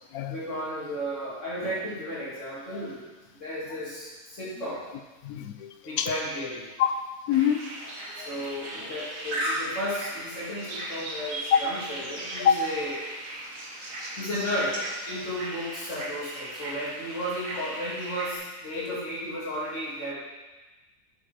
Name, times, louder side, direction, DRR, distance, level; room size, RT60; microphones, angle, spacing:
voice 1, 0.3-4.8 5.8-6.6 8.2-12.9 14.2-20.1, equal, 55° left, -8 dB, 3.0 m, -34 dB
voice 2, 5.2-6.1 6.8-6.9 7.3-8.3 12.4-12.6 18.8-19.0, left 9 dB, 90° left, 8 dB, 1.1 m, -26 dB
sound 1, 7.3-18.4, right 1 dB, 70° right, 1.8 m, -37 dB
7.7 x 6.4 x 5.0 m, 1.2 s
omnidirectional pair, 1.5 m